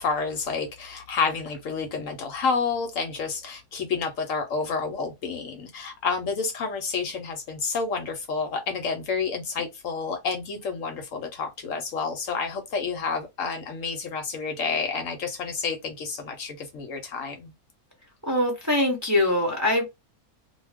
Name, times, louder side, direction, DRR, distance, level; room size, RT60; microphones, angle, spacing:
voice 1, 0.0-17.5, left 5 dB, 65° left, 0.9 m, -29 dB
voice 2, 18.2-19.8, left 1 dB, 15° right, 0.6 m, -23 dB
2.4 x 2.2 x 3.4 m
omnidirectional pair, 1.6 m